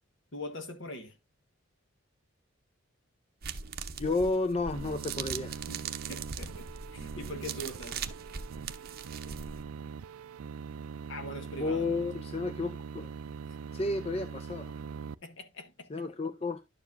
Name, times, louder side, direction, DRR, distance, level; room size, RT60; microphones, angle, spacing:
voice 1, 0.3-1.2 5.7-8.0 11.1-12.0 15.2-16.1, left 1 dB, 60° left, 1.5 m, -42 dB
sound 1, 3.4-9.6, right 6 dB, 45° right, 0.7 m, -40 dB
voice 2, 4.0-5.6 11.6-13.1 13.7-14.8 15.9-16.6, left 3 dB, 25° left, 0.5 m, -32 dB
sound 2, 4.7-15.1, right 6 dB, 85° right, 0.4 m, -42 dB
11.0 x 7.1 x 2.6 m
head